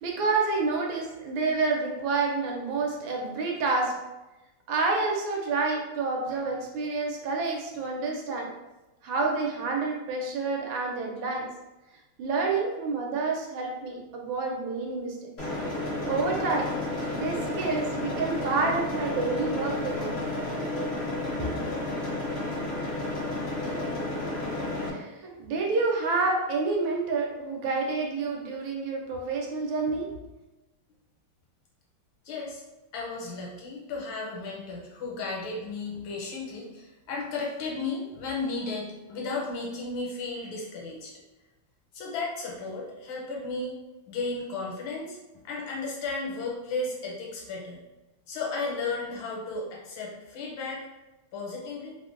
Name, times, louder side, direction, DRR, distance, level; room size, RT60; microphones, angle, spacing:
voice 1, 0.0-3.9 4.7-8.5 9.0-11.5 12.2-15.3 16.0-16.7 17.1-20.2 21.4-21.9 24.8-30.1, right 3 dB, 80° right, 0 dB, 1.3 m, -28 dB
sound 1, 15.4-24.9, left 2 dB, 55° left, 0.7 m, -31 dB
voice 2, 32.2-32.6 32.9-41.1 41.9-43.8 44.1-45.2 45.4-47.8 48.3-50.8 51.3-52.0, left 3 dB, 75° left, -2 dB, 1.4 m, -34 dB
3.3 x 2.1 x 2.4 m, 1.0 s
omnidirectional pair, 2.2 m